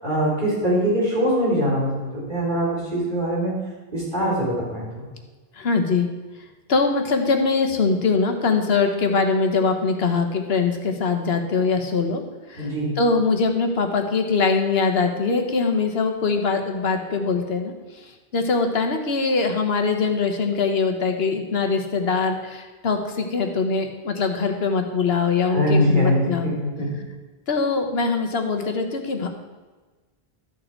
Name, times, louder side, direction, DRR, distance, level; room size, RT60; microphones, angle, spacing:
voice 1, 0.0-3.5 3.9-5.0 12.6-12.9 25.5-27.0, equal, 50° right, -6 dB, 3.8 m, -22 dB
voice 2, 5.5-6.1 6.7-12.2 12.5-26.5 27.5-29.3, left 4 dB, 75° left, 5 dB, 1.4 m, -22 dB
13.0 x 6.6 x 4.5 m, 1.3 s
omnidirectional pair, 1.1 m